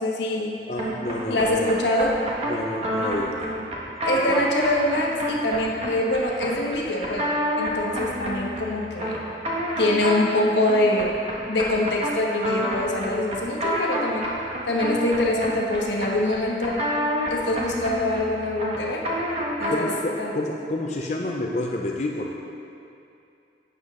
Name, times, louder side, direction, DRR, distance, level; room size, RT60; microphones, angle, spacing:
voice 1, 0.0-0.6 1.3-2.1 4.0-9.2 9.8-11.2 11.5-14.3 14.6-16.8 17.3-19.1 19.6-19.9 20.2-20.3, left 1 dB, 80° left, -1 dB, 1.3 m, -24 dB
voice 2, 0.7-1.7 2.4-3.3 19.7-22.3, left 1 dB, 40° left, -1 dB, 0.6 m, -29 dB
sound 1, 0.8-20.0, equal, 35° right, 1.4 m, -29 dB
11.5 x 8.1 x 3.7 m, 2.6 s
head